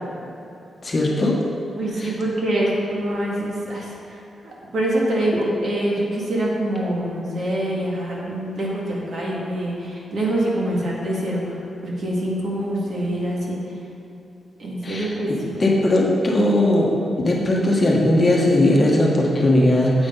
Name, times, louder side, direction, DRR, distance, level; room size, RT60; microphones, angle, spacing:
voice 1, 0.8-1.4 2.0-2.1 14.8-16.9 17.2-20.1, left 1 dB, 30° left, -2 dB, 1.2 m, -18 dB
voice 2, 1.8-3.9 4.4-13.6 14.6-15.5, right 1 dB, 50° right, -4 dB, 2.0 m, -25 dB
9.5 x 8.2 x 3.9 m, 2.9 s
wide cardioid pair, 145°, 0 cm